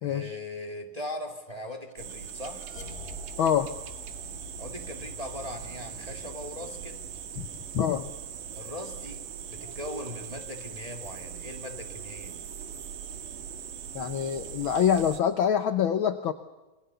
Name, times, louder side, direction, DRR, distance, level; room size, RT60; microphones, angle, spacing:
voice 1, 0.0-2.6 4.6-7.0 8.5-12.4, left 1 dB, 15° right, 4 dB, 1.8 m, -40 dB
sound 1, 1.3-10.2, left 3 dB, 30° left, 5.0 m, -49 dB
sound 2, 2.0-15.2, right 8 dB, 80° right, 3.3 m, -41 dB
voice 2, 3.4-3.7 7.4-7.5 7.7-8.1 13.9-16.3, left 8 dB, 75° left, 10 dB, 1.1 m, -25 dB
28.0 x 22.0 x 6.9 m, 1.1 s
omnidirectional pair, 3.7 m